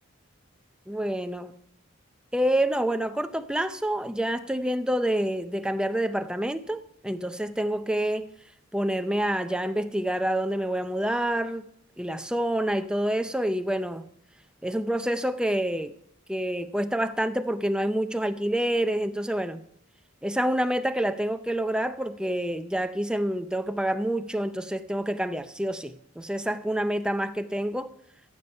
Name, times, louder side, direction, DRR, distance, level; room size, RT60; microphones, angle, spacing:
voice 1, 0.9-1.5 2.3-8.3 8.7-11.6 12.0-14.0 14.6-15.9 16.3-19.6 20.2-27.9, right 1 dB, 5° right, 0.4 m, -27 dB
15.0 x 7.2 x 5.4 m
head